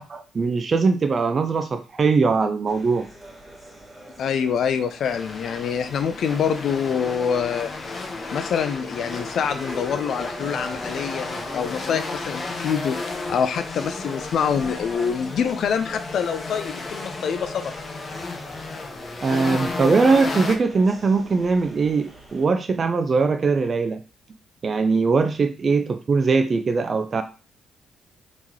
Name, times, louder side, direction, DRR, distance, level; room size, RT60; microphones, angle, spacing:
voice 1, 0.0-3.1 19.2-24.0 24.6-27.2, right 4 dB, 45° right, 8 dB, 0.4 m, -21 dB
sound 1, 2.7-22.5, right 1 dB, 20° right, 1.6 m, -44 dB
voice 2, 4.2-7.7 8.3-13.0 13.3-17.7, left 7 dB, 65° left, 9 dB, 0.3 m, -25 dB
sound 2, 5.0-20.6, left 3 dB, 40° left, 0.8 m, -33 dB
3.6 x 3.0 x 2.8 m, 0.34 s
supercardioid pair, 60°, 0 cm